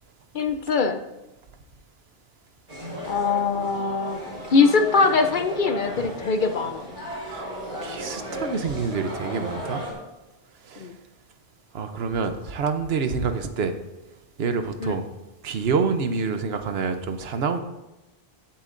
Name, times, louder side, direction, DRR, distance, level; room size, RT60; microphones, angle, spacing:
voice 1, 0.3-1.0 3.1-4.2 4.5-6.9 10.8-11.0 14.8-15.0, left 4 dB, 55° left, 7 dB, 0.8 m, -22 dB
sound 1, 2.7-9.9, equal, 30° right, 3.5 m, -35 dB
voice 2, 7.8-9.8 10.7-10.9 11.7-13.8 14.4-15.1 15.4-17.6, right 5 dB, 75° right, 8 dB, 1.0 m, -27 dB
15.5 x 7.2 x 2.6 m, 0.99 s
omnidirectional pair, 1.0 m